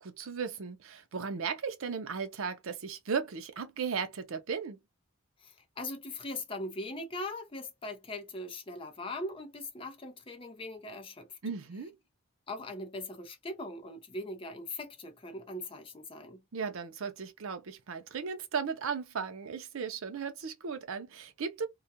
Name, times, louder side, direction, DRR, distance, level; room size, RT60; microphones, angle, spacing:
voice 1, 0.0-4.8 11.4-11.9 16.5-21.7, right 6 dB, 75° right, 0.5 m, -36 dB
voice 2, 5.4-11.4 12.5-16.4, left 2 dB, 25° left, 0.5 m, -40 dB
2.4 x 2.2 x 2.6 m
head